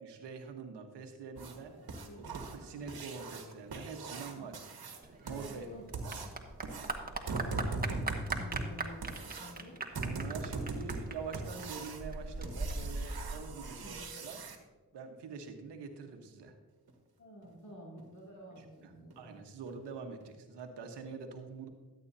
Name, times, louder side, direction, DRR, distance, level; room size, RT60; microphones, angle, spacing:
voice 1, 0.0-1.8 2.5-4.6 5.2-5.7 6.0-6.1 7.3-7.8 10.0-14.4 14.9-16.5 18.6-21.7, right 5 dB, 85° right, 5 dB, 1.3 m, -45 dB
sound 1, 1.4-14.6 16.9-17.0 17.4-17.5 18.0-18.1 18.6-18.7 19.1-19.3 19.7-19.8 20.2-20.3, right 3 dB, 65° right, 1.6 m, -41 dB
Clapping / Applause, 5.0-14.0, right 2 dB, 20° right, 1.5 m, -40 dB
voice 2, 5.3-6.3 7.5-9.8 13.8-14.0 17.2-19.3, equal, 45° left, -5 dB, 2.8 m, -50 dB
13.5 x 8.7 x 2.7 m, 1.3 s
supercardioid pair, 40°, 40 cm